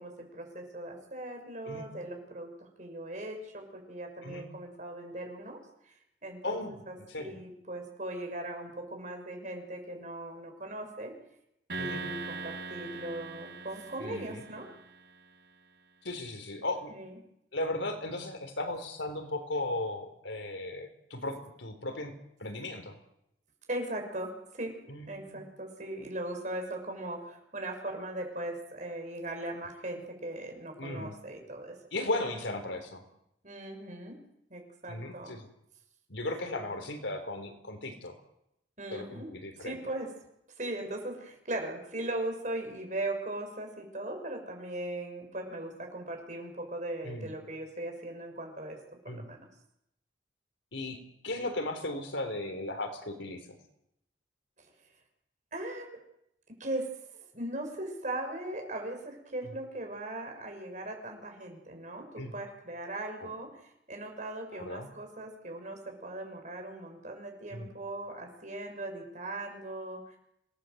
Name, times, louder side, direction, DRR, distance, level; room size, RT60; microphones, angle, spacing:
voice 1, 0.0-5.6 5.9-6.0 6.2-6.6 6.9-11.1 11.7-14.7 16.9-17.2 23.7-24.8 25.1-31.8 33.4-34.1 34.5-35.3 38.8-39.3 39.6-40.1 40.6-48.8 49.0-49.5 55.5-56.0 56.6-63.5 63.9-70.2, right 1 dB, 40° right, 4 dB, 6.2 m, -39 dB
voice 2, 6.4-7.4 11.8-12.0 14.0-14.4 16.0-16.9 17.5-22.1 22.4-23.0 24.9-25.4 30.8-31.1 31.9-33.0 34.9-35.5 36.1-38.1 38.9-39.8 47.0-47.3 49.1-49.2 50.7-51.0 51.2-53.6 62.2-62.3 63.2-63.3 64.5-64.9 67.5-67.7, left 2 dB, 75° left, 8 dB, 3.9 m, -36 dB
sound 1, 11.7-15.2, right 4 dB, 55° right, 4.8 m, -41 dB
26.5 x 18.5 x 8.0 m, 0.79 s
head